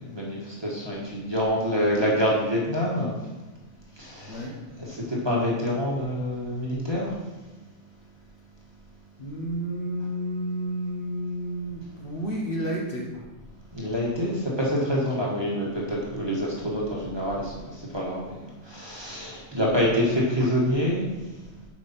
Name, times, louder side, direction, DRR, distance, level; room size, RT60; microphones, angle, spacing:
voice 1, 0.0-3.1 4.0-4.5 4.8-7.1 13.7-21.0, equal, 20° right, -5 dB, 1.5 m, -26 dB
voice 2, 9.2-13.1, right 1 dB, 50° left, -2 dB, 1.2 m, -31 dB
7.4 x 5.3 x 4.2 m, 1.1 s
omnidirectional pair, 1.3 m